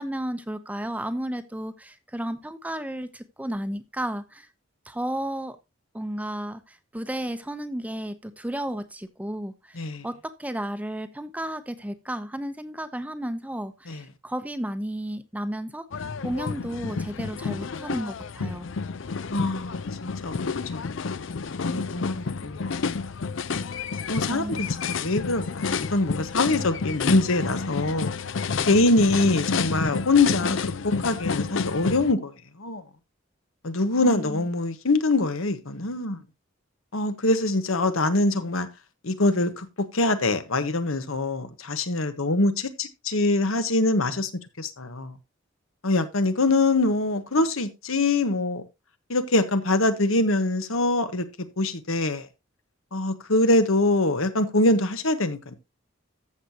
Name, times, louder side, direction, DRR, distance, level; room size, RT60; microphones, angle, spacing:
voice 1, 0.0-4.5 4.8-5.6 5.9-18.7 24.3-24.7 34.0-34.5, right 1 dB, 5° right, 0.7 m, -33 dB
sound 1, 15.9-32.1, left 5 dB, 65° left, 0.5 m, -30 dB
voice 2, 19.3-20.4 20.7-20.8 21.6-22.7 24.1-28.1 28.7-30.6 30.8-32.3 32.6-32.8 33.6-36.2 36.9-38.7 39.0-39.7 39.9-44.3 44.6-45.1 45.8-48.6 49.1-51.3 51.6-52.3 52.9-55.6, left 2 dB, 90° left, 1.3 m, -24 dB
14.0 x 6.6 x 2.9 m
head